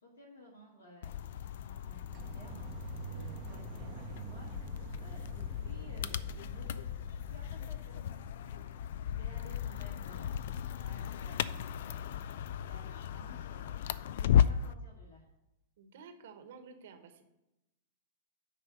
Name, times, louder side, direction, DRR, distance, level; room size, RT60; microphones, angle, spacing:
voice 1, 0.0-2.7 3.0-4.5 5.0-6.2 6.4-6.9 7.3-12.2 12.6-13.8 14.1-15.3, left 1 dB, 85° left, -5 dB, 2.0 m, -56 dB
sound 1, 1.0-14.7, left 9 dB, 65° left, 0.3 m, -35 dB
sound 2, 2.1-8.9, right 9 dB, 40° right, 0.7 m, -48 dB
voice 2, 15.8-17.2, right 5 dB, 70° right, 7 dB, 1.2 m, -52 dB
9.5 x 3.4 x 6.8 m, 0.92 s
hypercardioid pair, 115°, 0 cm